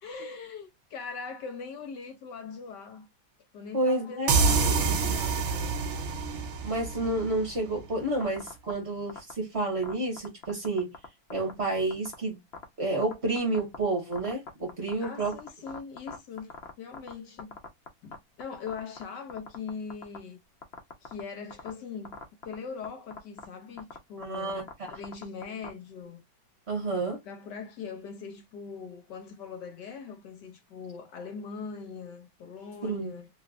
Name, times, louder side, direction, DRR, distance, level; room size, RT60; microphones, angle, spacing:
voice 1, 0.0-3.1 3.5-5.8 15.0-17.6 18.0-20.4 21.0-22.2 22.4-26.2 27.2-33.3, left 5 dB, 65° left, 1.3 m, -41 dB
voice 2, 3.7-4.4 6.6-10.9 11.3-12.4 12.8-15.3 24.2-24.7 26.7-27.2 32.8-33.1, right 2 dB, 35° right, 1.6 m, -30 dB
sound 1, 4.3-7.8, right 4 dB, 55° right, 0.8 m, -27 dB
sound 2, 8.2-8.7 9.1-9.3 9.8-11.0 11.3-11.5 11.9-12.1 12.5-12.6 13.0-13.8 14.1-17.1 17.4-18.1 18.4-19.0 19.3-20.2 20.6-21.2 21.5-21.7 22.0-22.5 22.8-22.9 23.1-23.4 23.8-24.0 24.2-25.7, left 6 dB, 45° left, 0.8 m, -40 dB
3.2 x 3.2 x 2.4 m
omnidirectional pair, 2.1 m